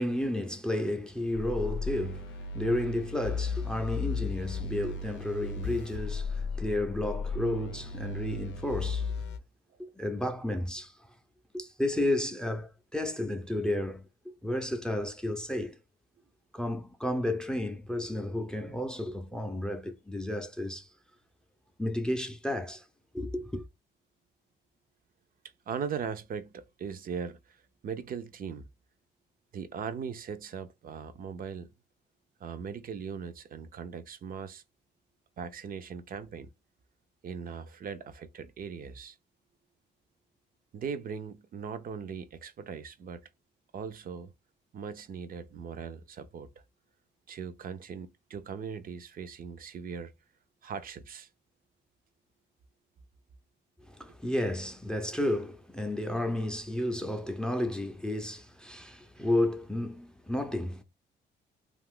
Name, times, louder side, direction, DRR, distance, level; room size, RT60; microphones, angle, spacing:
voice 1, 0.0-9.1 9.8-10.9 11.5-15.8 16.5-20.9 21.8-22.9 23.1-23.6 53.9-60.8, left 1 dB, 5° left, 0.5 m, -32 dB
sound 1, 1.3-9.4, left 4 dB, 75° left, 0.6 m, -35 dB
voice 2, 25.7-28.7 29.5-31.7 32.4-34.6 35.4-36.5 37.2-39.2 40.7-43.3 43.7-44.3 44.7-46.5 47.3-50.1 50.6-51.3, right 6 dB, 50° right, 0.5 m, -39 dB
2.4 x 2.4 x 3.6 m
cardioid pair, 80°, 19 cm